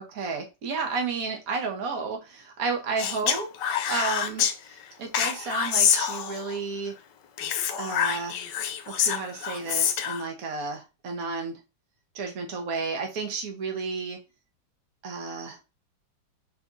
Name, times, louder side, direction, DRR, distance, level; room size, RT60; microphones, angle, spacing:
voice 1, 0.0-6.9 7.8-8.4 8.9-11.6 12.1-14.2 15.0-15.6, right 4 dB, 50° right, 2 dB, 1.4 m, -32 dB
Speech, 3.0-4.5 5.1-6.6 7.4-10.3, left 9 dB, 75° left, 1.2 m, -26 dB
4.9 x 3.4 x 2.6 m, 0.27 s
omnidirectional pair, 2.1 m